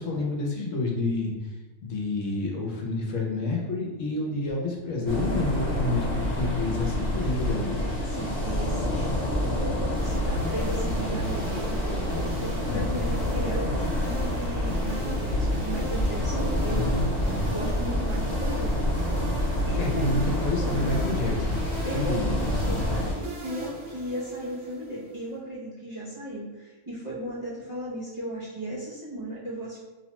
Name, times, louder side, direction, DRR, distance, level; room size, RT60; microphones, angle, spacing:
voice 1, 0.0-1.3 1.8-7.8 12.7-12.9 16.7-17.4 19.8-21.6 21.9-22.8, left 2 dB, 80° left, 0 dB, 1.0 m, -29 dB
sound 1, 5.1-23.1, left 1 dB, 50° left, 1.1 m, -28 dB
voice 2, 8.0-9.1 9.4-16.9 17.2-19.2 19.7-20.9 21.8-29.8, right 1 dB, 40° right, -10 dB, 0.5 m, -36 dB
sound 2, 9.9-25.3, right 1 dB, 65° right, 0.9 m, -37 dB
2.8 x 2.1 x 2.9 m, 1.2 s
omnidirectional pair, 1.3 m